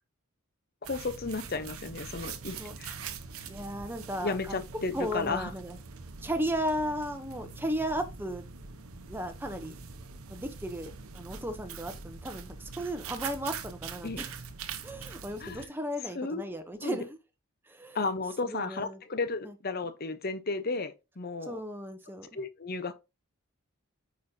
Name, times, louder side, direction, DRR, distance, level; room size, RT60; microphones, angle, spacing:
sound 1, 0.8-15.6, right 5 dB, 75° right, 0.8 m, -43 dB
voice 1, 0.9-2.9 4.2-5.5 14.0-14.2 15.4-15.7 16.1-16.4 16.8-17.0 17.9-21.6 22.3-22.9, left 3 dB, 45° left, 0.8 m, -33 dB
voice 2, 3.5-4.6 4.9-5.8 6.2-8.4 9.0-9.7 10.3-14.3 14.8-17.2 17.7-18.0 18.5-19.0 19.4-19.5 21.4-22.4, equal, 10° right, 0.7 m, -35 dB
8.6 x 5.1 x 2.7 m
head